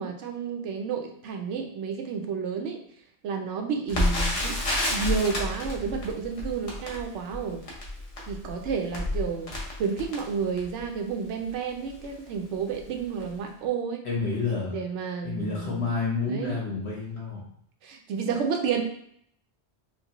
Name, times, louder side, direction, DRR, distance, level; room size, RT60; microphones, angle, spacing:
voice 1, 0.0-2.8 3.2-4.6 4.9-7.6 8.3-9.5 9.8-14.0 14.7-15.9 16.2-16.6 17.8-18.8, right 6 dB, 85° right, 4 dB, 0.9 m, -31 dB
Crackle, 3.9-10.9 11.5-11.6 11.9-12.1 12.7-12.9 13.2-13.3, left 1 dB, 35° left, 0.8 m, -30 dB
voice 2, 14.0-14.8 15.2-17.4, left 4 dB, 70° left, -4 dB, 1.5 m, -29 dB
4.3 x 2.1 x 2.9 m, 0.66 s
omnidirectional pair, 1.2 m